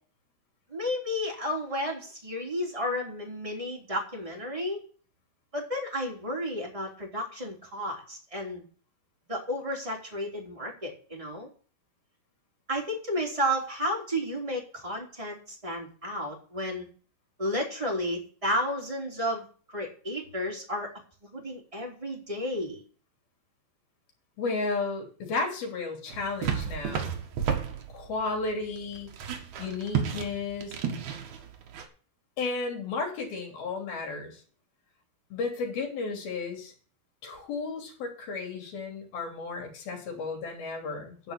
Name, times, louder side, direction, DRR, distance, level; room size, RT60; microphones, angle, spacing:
voice 1, 0.7-4.8 5.5-8.6 9.3-11.5 12.7-16.9 17.4-19.5 19.7-20.9 21.2-22.8, equal, 10° right, -1 dB, 2.7 m, -32 dB
voice 2, 24.4-27.1 27.9-29.2 29.6-30.8 32.4-34.4 35.3-36.7 37.2-41.3, left 4 dB, 55° left, 1 dB, 4.8 m, -33 dB
sound 1, 26.1-31.9, right 7 dB, 60° right, 2.2 m, -33 dB
11.0 x 5.5 x 8.5 m, 0.40 s
omnidirectional pair, 5.2 m